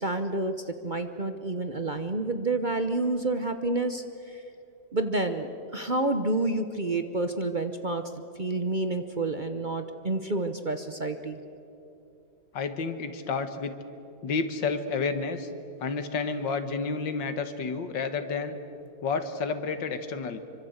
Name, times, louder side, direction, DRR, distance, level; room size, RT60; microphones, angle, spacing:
voice 1, 0.0-4.4 4.9-8.1 8.4-11.4, right 2 dB, 35° right, 8 dB, 0.9 m, -29 dB
voice 2, 12.5-13.7 14.2-15.5 15.8-18.6 19.0-20.4, left 4 dB, 90° left, 9 dB, 2.1 m, -30 dB
26.0 x 24.0 x 8.0 m, 2.8 s
omnidirectional pair, 1.9 m